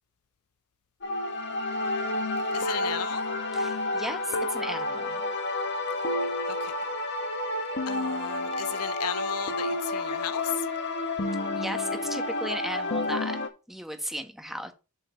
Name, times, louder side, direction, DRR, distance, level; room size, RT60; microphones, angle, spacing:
sound 1, 1.0-13.5, left 2 dB, 55° left, 1.6 m, -30 dB
voice 1, 2.5-3.3 6.6-6.7 7.9-10.5, left 10 dB, 90° left, 0.6 m, -35 dB
voice 2, 3.5-5.2 11.6-13.4 13.7-14.7, equal, ahead, 1.2 m, -35 dB
7.5 x 4.5 x 5.7 m
head